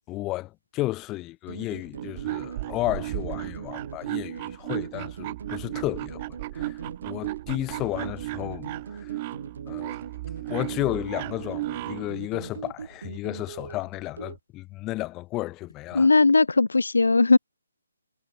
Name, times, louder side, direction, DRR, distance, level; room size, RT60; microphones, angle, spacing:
voice 1, 0.1-9.2 9.7-10.0 10.4-16.1, left 18 dB, 15° left, 4.7 m, -33 dB
sound 1, 1.5-14.4, right 6 dB, 55° right, 5.0 m, -41 dB
sound 2, 1.9-12.1, right 19 dB, 25° right, 6.4 m, -35 dB
voice 2, 15.9-17.4, left 3 dB, 70° left, 0.7 m, -18 dB
figure-of-eight pair, 140°, 0 cm